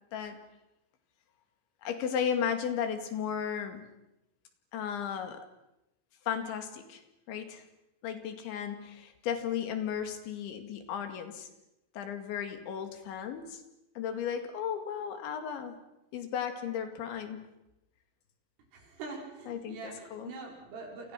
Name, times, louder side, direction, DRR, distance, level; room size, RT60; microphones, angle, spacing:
voice 1, 1.8-3.8 4.7-5.4 6.3-7.0 7.3-7.6 8.0-11.5 11.9-13.6 14.0-15.8 16.1-17.5 19.5-20.3, left 8 dB, 70° left, 7 dB, 4.4 m, -35 dB
voice 2, 18.7-21.1, right 4 dB, 85° right, 0 dB, 7.6 m, -44 dB
29.0 x 28.0 x 6.0 m, 0.90 s
omnidirectional pair, 5.6 m